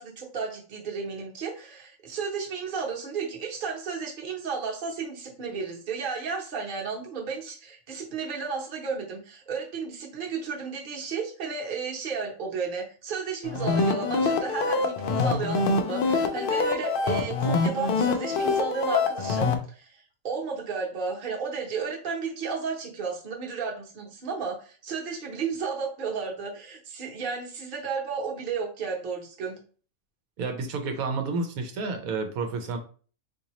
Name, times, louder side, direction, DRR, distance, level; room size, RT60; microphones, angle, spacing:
voice 1, 0.0-29.6, right 5 dB, 45° right, -1 dB, 0.9 m, -33 dB
sound 1, 13.4-19.6, left 3 dB, 80° left, 0.4 m, -25 dB
voice 2, 30.4-32.8, right 4 dB, 85° right, 6 dB, 1.1 m, -30 dB
3.8 x 2.7 x 2.9 m, 0.40 s
omnidirectional pair, 1.5 m